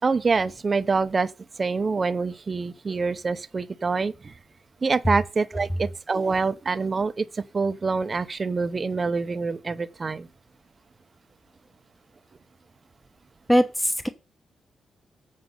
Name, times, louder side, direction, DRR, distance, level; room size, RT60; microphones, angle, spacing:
voice 1, 0.0-1.3 1.6-4.3 4.8-10.3, right 4 dB, 30° right, 0.7 m, -26 dB
voice 2, 13.5-14.1, equal, 5° left, 1.0 m, -20 dB
8.0 x 5.1 x 6.7 m
cardioid pair, 110°, 0 cm